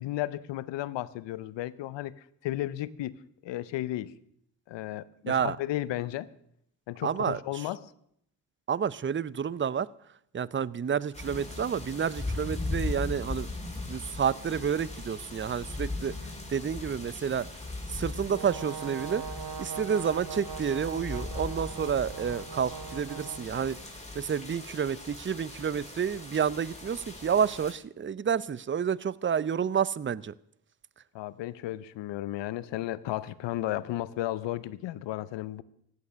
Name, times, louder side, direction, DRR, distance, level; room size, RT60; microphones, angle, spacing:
voice 1, 0.0-2.1 2.4-3.1 3.4-4.1 4.7-6.3 6.9-7.8 31.1-35.6, left 14 dB, 90° left, 18 dB, 0.7 m, -34 dB
voice 2, 5.3-5.6 7.0-7.7 8.7-9.9 10.3-13.5 13.9-16.1 16.5-17.5 17.9-19.2 19.6-23.8 24.1-30.3, right 7 dB, 30° right, 21 dB, 0.6 m, -29 dB
sound 1, 11.1-27.7, left 2 dB, 15° left, 4.1 m, -39 dB
Brass instrument, 18.3-23.5, right 7 dB, 55° right, 1.0 m, -40 dB
16.0 x 11.0 x 6.4 m, 0.72 s
supercardioid pair, 45°, 42 cm